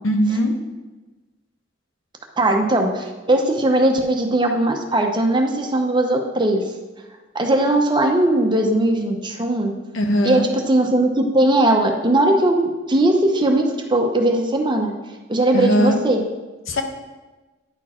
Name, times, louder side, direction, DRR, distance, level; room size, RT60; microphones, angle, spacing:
voice 1, 0.0-0.5 9.9-10.4 15.5-16.0 16.7-16.8, equal, 90° left, 4 dB, 0.9 m, -19 dB
voice 2, 2.4-6.7 7.3-9.7 10.2-15.0 15.3-16.2, right 1 dB, 25° right, 3 dB, 0.7 m, -19 dB
9.8 x 4.4 x 4.3 m, 1.2 s
head